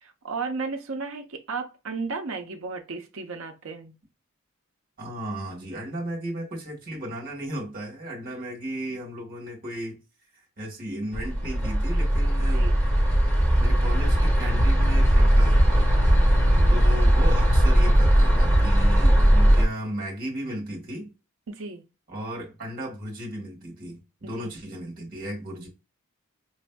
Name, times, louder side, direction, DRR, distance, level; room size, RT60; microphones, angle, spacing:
voice 1, 0.0-3.9 12.4-12.8 16.5-16.8 21.5-21.8 24.2-24.5, right 4 dB, 70° right, 0.7 m, -34 dB
voice 2, 5.0-10.0 10.3-12.7 13.6-16.0 16.7-21.1 22.1-25.7, right 1 dB, 40° right, 1.4 m, -35 dB
sound 1, 11.1-19.7, equal, 10° left, 1.4 m, -19 dB
4.7 x 2.6 x 2.2 m
head